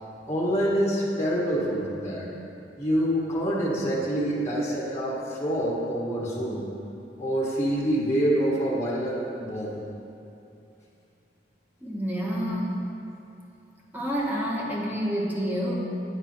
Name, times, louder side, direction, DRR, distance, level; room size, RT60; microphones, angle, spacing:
voice 1, 0.3-2.3 2.8-6.7 7.2-9.8, equal, 15° left, -7 dB, 1.0 m, -26 dB
voice 2, 11.8-12.8 13.9-15.7, equal, 10° right, -4 dB, 1.1 m, -28 dB
9.5 x 4.4 x 4.3 m, 2.7 s
head